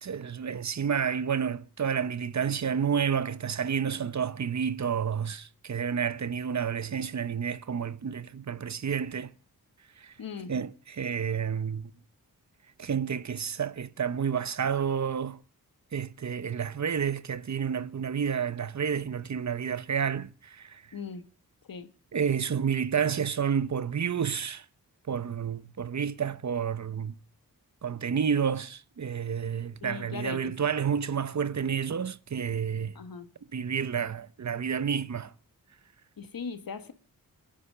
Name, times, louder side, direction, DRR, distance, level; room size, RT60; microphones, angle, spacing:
voice 1, 0.0-9.3 10.0-10.1 10.5-11.9 12.8-15.4 15.9-20.8 22.1-24.7 25.1-27.2 27.8-33.0 33.5-35.3, right 7 dB, 50° right, 0.8 m, -30 dB
voice 2, 10.2-10.5 20.9-21.2 21.7-21.9 29.8-30.5 33.0-33.3 36.2-36.9, left 5 dB, 75° left, 1.7 m, -39 dB
27.0 x 10.0 x 5.0 m
wide cardioid pair, 95°, 35 cm